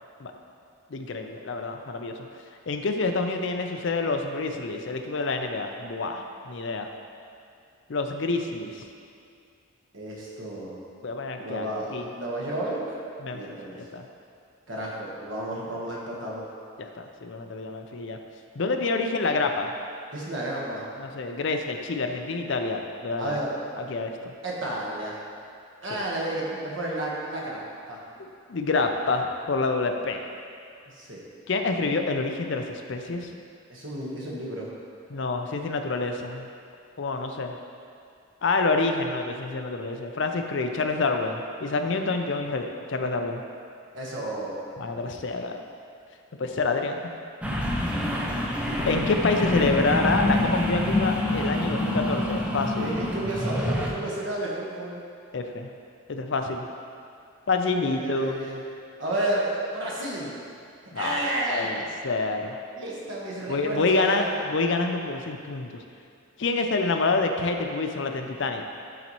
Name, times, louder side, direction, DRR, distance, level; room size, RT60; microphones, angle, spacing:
voice 1, 0.9-2.1 2.7-6.9 7.9-8.8 11.0-12.0 13.2-14.1 16.8-18.2 18.6-19.7 21.0-23.4 23.8-24.3 25.9-26.0 28.2-30.3 31.5-33.3 35.1-36.5 37.0-37.5 38.4-43.4 44.8-45.6 46.4-47.0 48.9-52.9 55.3-55.7 56.1-56.7 57.5-58.3 60.9-61.2 61.5-62.6 63.5-65.8 66.4-68.6, left 3 dB, 55° left, 5 dB, 0.5 m, -27 dB
voice 2, 9.9-10.8 11.4-13.0 13.3-13.8 14.7-16.5 20.1-20.9 23.2-23.6 24.4-25.2 25.8-27.6 27.9-28.0 30.9-31.2 33.7-34.7 43.9-44.6 52.7-55.0 57.8-58.6 59.0-60.3 60.9-61.9 62.7-64.3, right 1 dB, 60° right, -4 dB, 1.3 m, -31 dB
sound 1, 47.4-53.9, left 1 dB, 5° right, 0.4 m, -26 dB
11.5 x 4.1 x 3.0 m, 2.4 s
head